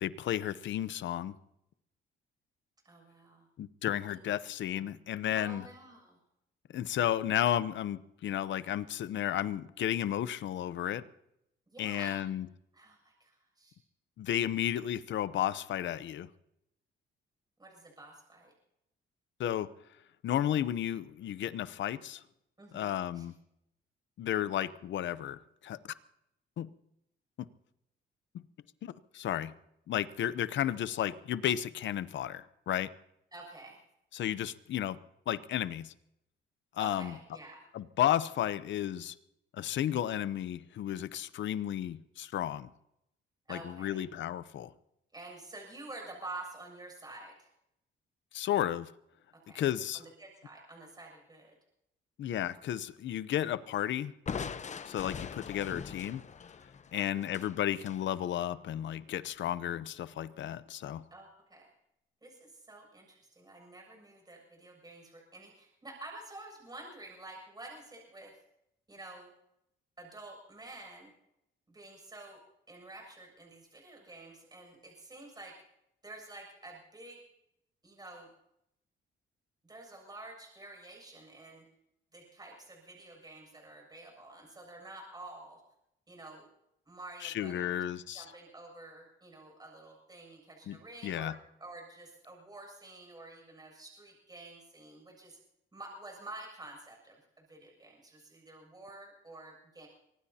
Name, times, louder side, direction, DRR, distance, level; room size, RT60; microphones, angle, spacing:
voice 1, 0.0-1.3 3.6-5.6 6.7-11.0 11.8-12.5 14.2-16.3 19.4-19.7 20.2-22.2 22.7-23.4 24.2-25.8 26.6-26.7 27.4-27.5 28.8-29.5 29.9-32.9 34.1-35.0 35.3-35.9 36.8-37.1 37.7-39.1 39.5-42.7 43.5-44.7 48.3-48.9 49.5-50.0 52.2-54.1 54.9-56.2 56.9-61.0 87.2-88.2 90.7-90.8 91.0-91.3, left 11 dB, 70° left, 0.8 m, -33 dB
voice 2, 2.9-3.5 5.3-6.2 11.7-12.2 12.7-13.8 17.6-18.5 22.6-23.3 33.3-33.8 36.8-37.7 43.5-44.0 45.1-47.5 49.4-49.6 49.9-51.5 55.4-55.7 56.9-57.3 61.1-61.7 62.2-68.3 68.9-69.3 70.0-71.1 71.7-72.4 72.7-75.6 76.0-77.2 77.8-78.3 79.6-81.6 82.1-85.6 86.1-86.5 86.9-87.8 88.1-91.3 91.6-95.4 95.7-99.9, right 2 dB, 20° right, 7.0 m, -49 dB
Crushing, 54.3-58.0, left 6 dB, 35° left, 0.8 m, -41 dB
24.0 x 19.0 x 2.9 m
cardioid pair, 90°, 20 cm